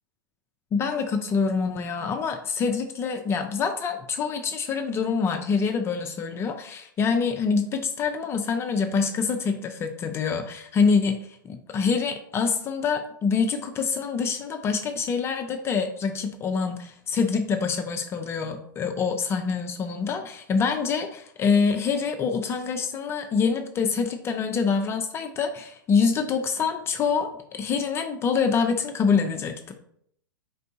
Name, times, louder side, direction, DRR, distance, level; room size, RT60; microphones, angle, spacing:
voice 1, 0.7-11.2 11.4-29.7, left 5 dB, 20° left, 6 dB, 0.4 m, -25 dB
4.3 x 3.6 x 2.7 m, 0.67 s
figure-of-eight pair, 100°, 12 cm